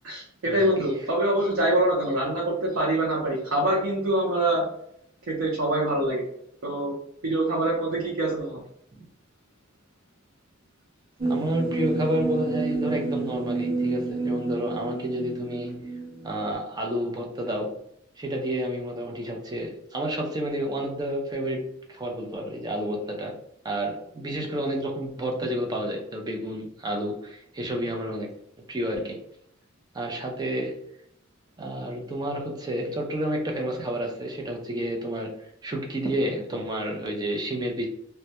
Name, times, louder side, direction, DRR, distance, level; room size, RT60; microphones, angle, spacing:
voice 1, 0.0-4.6 5.3-6.3 6.6-6.9 7.2-8.6, right 1 dB, 90° right, -2 dB, 0.6 m, -25 dB
sound 1, 11.2-16.5, right 3 dB, 50° right, 0.7 m, -29 dB
voice 2, 11.3-15.7 16.2-17.8 18.2-23.4 23.6-28.4 28.7-29.2 29.9-30.8 31.6-35.4 35.6-37.9, right 1 dB, 20° right, 1 dB, 0.4 m, -30 dB
2.2 x 2.1 x 2.7 m, 0.72 s
head